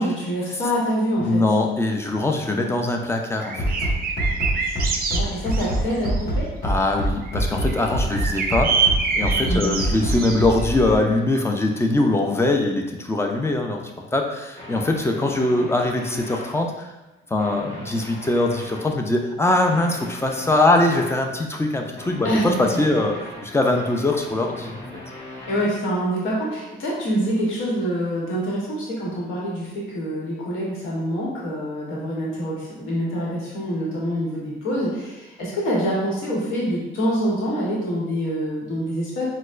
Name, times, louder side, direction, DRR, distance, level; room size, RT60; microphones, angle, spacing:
voice 1, 0.0-1.4 4.6-6.5 9.4-9.7 22.2-22.5 25.3-39.3, equal, 85° left, -5 dB, 1.0 m, -26 dB
voice 2, 1.2-3.9 6.6-8.8 9.1-16.9 17.3-24.8, left 2 dB, 15° left, 2 dB, 0.4 m, -22 dB
sound 1, 3.4-6.2 7.2-10.8, right 5 dB, 50° right, 0.5 m, -26 dB
Bass drum, 3.6-11.0, right 1 dB, 50° left, 1.3 m, -24 dB
sound 2, 14.5-16.5 17.2-18.9 19.7-21.2 21.9-25.7, left 1 dB, 35° left, 1.0 m, -39 dB
4.2 x 2.2 x 2.4 m, 1.0 s
cardioid pair, 90°, 20 cm